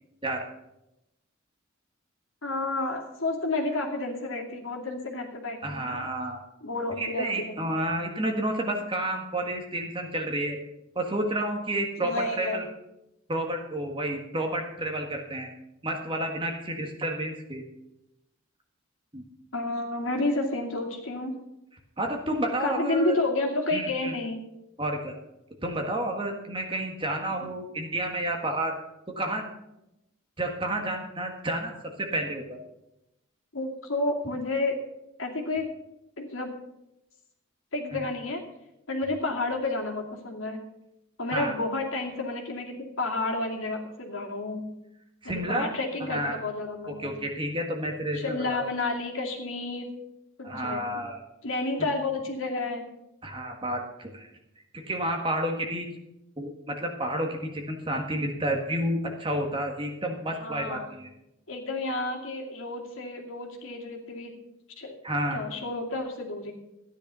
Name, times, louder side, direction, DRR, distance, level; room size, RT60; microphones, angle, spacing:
voice 1, 2.4-6.1 6.6-7.7 12.0-12.6 19.5-21.3 22.6-24.4 33.5-34.8 35.2-35.7 36.2-36.5 37.7-38.4 38.9-40.6 41.2-44.6 45.2-47.1 48.1-49.9 50.4-51.0 51.4-52.9 60.3-60.8 61.5-64.4 64.8-65.0 65.3-66.6, left 2 dB, 70° left, 1 dB, 2.4 m, -30 dB
voice 2, 5.6-6.4 7.0-10.6 10.9-12.6 13.3-15.5 15.8-17.6 19.1-19.2 22.0-23.2 23.7-24.1 24.8-25.1 25.6-28.7 29.2-29.5 30.4-31.7 32.0-32.6 41.3-41.5 45.2-45.7 46.1-46.4 47.0-48.7 50.4-51.2 53.2-54.3 54.7-55.9 56.4-61.1 65.0-65.4, right 1 dB, 25° right, 2 dB, 1.6 m, -30 dB
14.0 x 10.0 x 5.5 m, 0.87 s
head